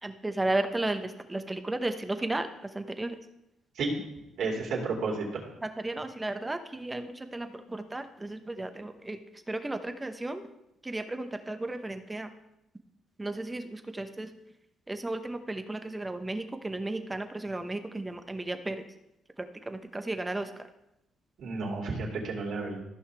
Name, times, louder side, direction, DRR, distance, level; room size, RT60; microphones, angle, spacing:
voice 1, 0.0-2.5 2.7-3.2 5.6-9.2 9.5-10.5 10.8-12.3 13.2-14.3 14.9-18.8 19.7-20.6, right 2 dB, 15° right, 8 dB, 0.9 m, -34 dB
voice 2, 4.4-5.3 21.4-22.8, right 3 dB, 70° right, -1 dB, 2.8 m, -31 dB
14.5 x 5.6 x 3.4 m, 0.87 s
cardioid pair, 90°, 0 cm